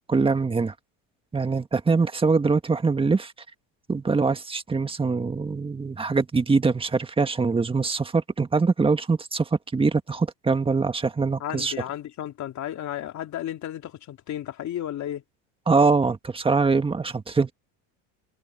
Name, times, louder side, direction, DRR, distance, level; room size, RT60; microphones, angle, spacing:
voice 1, 0.1-0.7 1.3-3.3 3.9-11.7 15.7-17.5, right 4 dB, 15° right, 1.7 m, -23 dB
voice 2, 11.4-15.2, left 11 dB, 45° left, 2.9 m, -33 dB
supercardioid pair, 125°, 40 cm